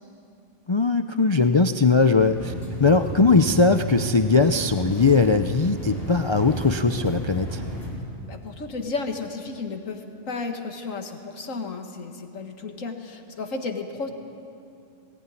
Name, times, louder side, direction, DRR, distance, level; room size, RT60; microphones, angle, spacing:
voice 1, 0.7-2.5 2.8-7.6, left 4 dB, 50° left, 8 dB, 0.3 m, -20 dB
sound 1, 2.2-7.9, right 1 dB, 20° right, 4.9 m, -32 dB
voice 2, 8.3-14.1, left 3 dB, 90° left, 4 dB, 2.0 m, -33 dB
20.0 x 18.0 x 9.8 m, 2.6 s
omnidirectional pair, 1.3 m